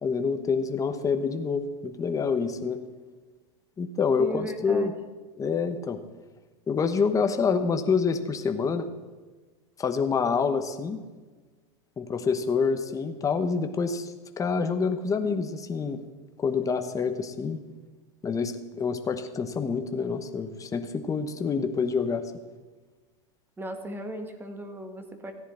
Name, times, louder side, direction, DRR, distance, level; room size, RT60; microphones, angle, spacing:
voice 1, 0.0-2.8 3.8-4.9 5.4-6.0 6.7-8.9 9.8-11.0 12.0-16.0 16.4-17.6 18.2-22.2, left 5 dB, 20° left, 8 dB, 1.0 m, -27 dB
voice 2, 4.2-4.9 23.6-25.3, right 1 dB, 10° right, 6 dB, 1.5 m, -36 dB
14.5 x 10.0 x 4.4 m, 1.3 s
supercardioid pair, 125°, 17 cm